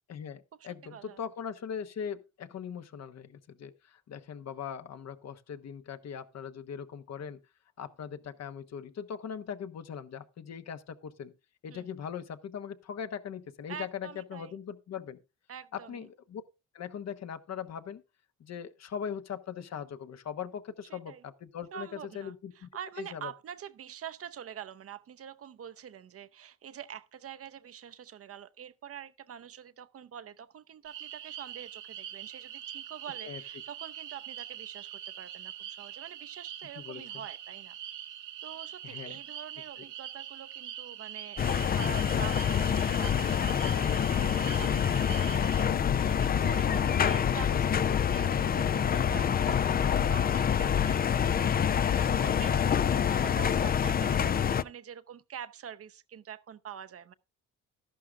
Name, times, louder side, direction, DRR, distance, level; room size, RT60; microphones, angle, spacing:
voice 1, 0.1-7.4 7.8-11.3 11.6-15.2 15.7-16.4 16.7-18.0 18.4-22.7 23.0-23.3 33.2-33.4 36.8-37.1 38.8-39.2 39.8-39.9, left 7 dB, 60° left, 1.1 m, -40 dB
voice 2, 0.6-1.2 11.7-11.9 13.7-14.6 15.5-16.0 20.9-21.2 21.7-37.8 38.4-57.1, right 9 dB, 50° right, 0.7 m, -46 dB
sound 1, 30.8-45.7, right 11 dB, 85° right, 1.3 m, -43 dB
sound 2, 41.4-54.6, left 8 dB, 30° left, 0.4 m, -26 dB
12.5 x 11.5 x 2.4 m
cardioid pair, 90°, 30 cm